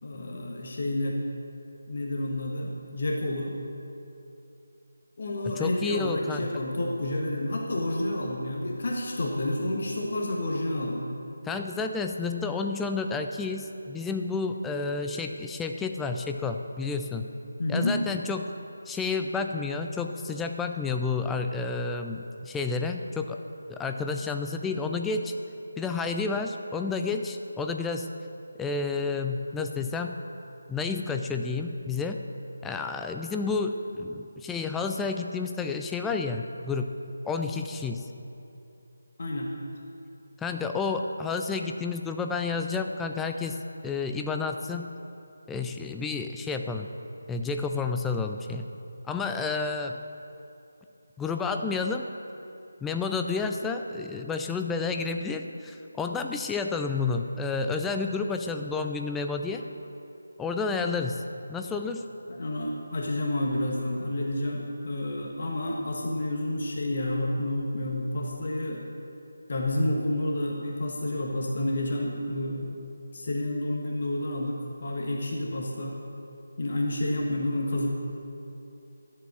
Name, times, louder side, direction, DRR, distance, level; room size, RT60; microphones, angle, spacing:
voice 1, 0.0-1.2 1.9-3.5 5.2-11.1 17.6-17.9 39.2-39.5 62.3-68.8 69.5-72.7 73.1-76.0 76.6-78.0, left 1 dB, 45° left, -1 dB, 1.4 m, -29 dB
voice 2, 5.6-6.5 11.5-17.3 17.7-18.5 18.9-23.4 23.7-25.3 25.8-28.1 28.6-30.2 30.7-32.2 32.6-36.9 37.2-38.0 40.4-44.9 45.5-46.9 47.3-48.7 49.1-50.0 51.2-52.0 52.8-59.6 60.4-61.2 61.5-62.0, left 4 dB, 5° left, 4 dB, 0.4 m, -30 dB
12.0 x 7.4 x 7.4 m, 2.8 s
figure-of-eight pair, 155°, 0 cm